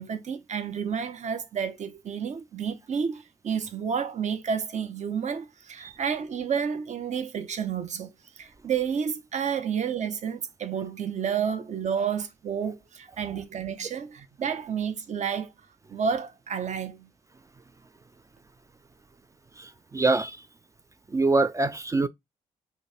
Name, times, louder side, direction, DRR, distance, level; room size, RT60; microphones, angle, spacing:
voice 1, 0.0-15.5 15.9-17.1, right 7 dB, 45° right, 0.7 m, -30 dB
voice 2, 19.6-20.4 21.1-22.1, right 3 dB, 20° right, 0.3 m, -25 dB
2.9 x 2.5 x 4.2 m
hypercardioid pair, 40°, 17 cm